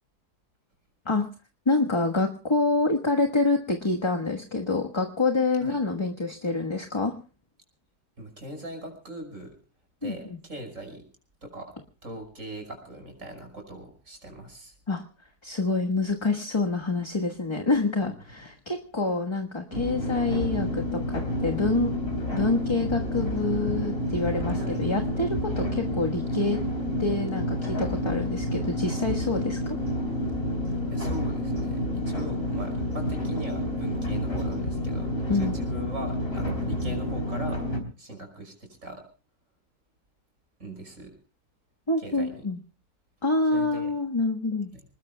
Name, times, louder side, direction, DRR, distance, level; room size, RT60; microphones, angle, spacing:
voice 1, 1.6-7.1 10.0-10.1 14.9-15.0 15.4-21.9 22.3-26.6 27.0-29.8 35.3-35.5 41.9-42.6 43.2-44.7, left 3 dB, 20° left, 3 dB, 1.3 m, -27 dB
voice 2, 8.2-9.6 10.0-11.1 11.4-11.7 12.0-14.8 18.0-18.5 24.6-24.8 30.9-37.6 38.0-39.0 40.6-41.2 42.0-42.4 43.5-43.9 44.7-44.8, right 1 dB, 50° right, 4 dB, 5.9 m, -41 dB
sound 1, 19.7-37.8, left 1 dB, 40° left, 3.8 m, -29 dB
27.5 x 20.0 x 2.2 m, 0.36 s
omnidirectional pair, 1.7 m